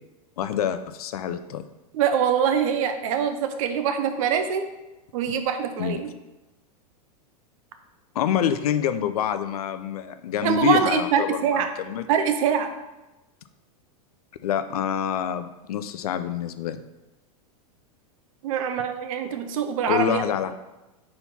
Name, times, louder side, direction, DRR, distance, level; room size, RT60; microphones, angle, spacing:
voice 1, 0.4-1.6 5.8-6.0 8.1-12.0 14.4-16.8 19.9-20.5, left 9 dB, 80° left, 10 dB, 0.5 m, -26 dB
voice 2, 1.9-4.7 5.1-6.1 10.4-11.7 12.1-12.7 18.4-20.2, right 7 dB, 65° right, 7 dB, 0.8 m, -24 dB
4.4 x 4.3 x 5.4 m, 1.0 s
hypercardioid pair, 125°, 19 cm